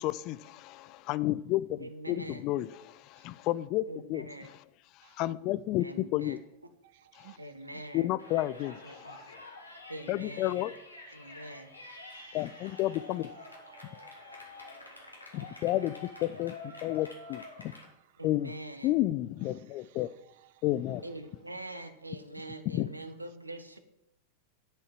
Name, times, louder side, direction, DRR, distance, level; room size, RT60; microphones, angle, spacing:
voice 1, 0.0-4.6 5.0-6.4 7.2-7.4 7.9-9.4 10.1-10.7 12.3-13.3 15.3-17.7 18.2-18.5 18.8-20.1 20.6-21.0 22.7-22.9, left 15 dB, 40° left, 0.4 m, -31 dB
voice 2, 1.8-2.4 3.8-4.5 5.8-6.4 7.4-8.1 8.8-9.2 9.9-10.6 11.1-11.7 18.2-19.0 21.0-23.8, right 1 dB, 85° right, 1.0 m, -44 dB
voice 3, 6.8-7.4 8.9-9.0 11.2-11.5 12.1-12.4 13.9-15.3 19.8-20.0 20.3-20.6, right 16 dB, 50° right, 0.4 m, -61 dB
Yell, 8.2-17.9, left 2 dB, 85° left, 2.0 m, -48 dB
10.0 x 5.6 x 7.5 m
figure-of-eight pair, 90°, 0 cm